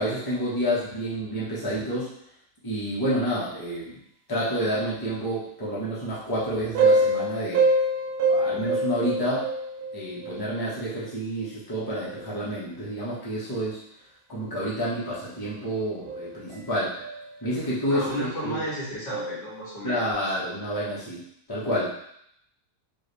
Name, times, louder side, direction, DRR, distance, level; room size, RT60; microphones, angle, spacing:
voice 1, 0.0-2.1 2.6-4.0 4.3-7.6 8.2-9.4 9.9-13.8 14.3-16.9 17.4-18.6 19.8-21.2 21.5-21.9, equal, 15° left, -8 dB, 1.1 m, -29 dB
sound 1, 6.7-10.5 12.1-12.3 14.7-14.8 15.5-15.6 16.1-16.6 17.0-17.4 17.9-18.3 18.5-20.1, right 2 dB, 70° right, 0.9 m, -26 dB
voice 2, 17.9-20.0, equal, 80° left, -7 dB, 2.2 m, -33 dB
4.7 x 2.9 x 3.4 m, 0.73 s
omnidirectional pair, 1.8 m